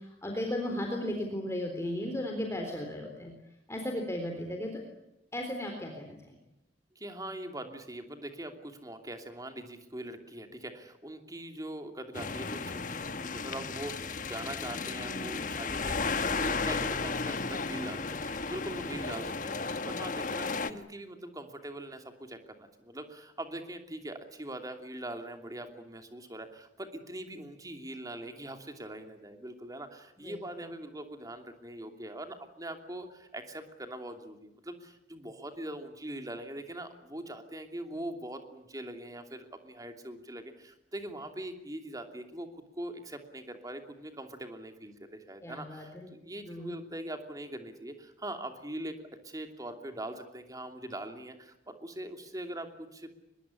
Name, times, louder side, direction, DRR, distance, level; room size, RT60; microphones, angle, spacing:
voice 1, 0.0-3.3 3.7-4.8 5.3-6.2 15.2-15.5 18.9-19.1 30.2-30.4 45.4-46.1 46.5-46.7, left 1 dB, 15° left, 2 dB, 3.8 m, -35 dB
voice 2, 6.9-48.9 49.2-53.1, right 1 dB, 20° right, 5 dB, 2.9 m, -42 dB
sound 1, 12.1-20.7, left 4 dB, 45° left, 1.1 m, -34 dB
23.5 x 21.5 x 9.9 m, 0.82 s
head